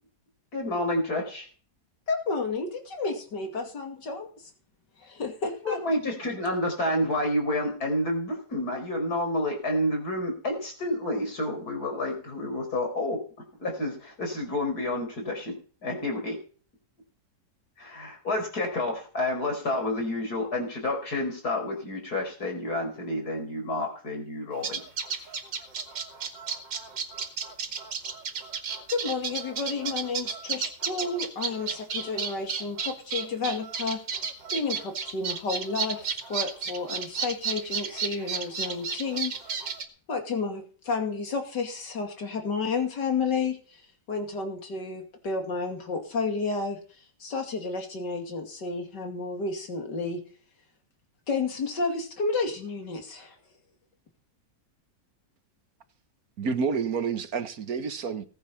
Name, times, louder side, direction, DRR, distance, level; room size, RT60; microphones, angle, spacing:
voice 1, 0.5-1.5 5.6-13.2 13.6-15.6 15.8-16.4 17.8-24.8 25.1-25.3, left 1 dB, 60° left, 5.5 m, -29 dB
voice 2, 2.1-4.3 5.0-5.8 28.9-34.0 34.5-39.3 40.1-43.8 44.1-46.8 47.2-50.2 51.3-53.4, left 4 dB, 75° left, 3.2 m, -31 dB
sound 1, 24.6-39.9, right 6 dB, 85° right, 2.9 m, -33 dB
voice 3, 56.4-58.3, right 5 dB, 60° right, 1.6 m, -29 dB
19.0 x 9.4 x 5.7 m
omnidirectional pair, 1.9 m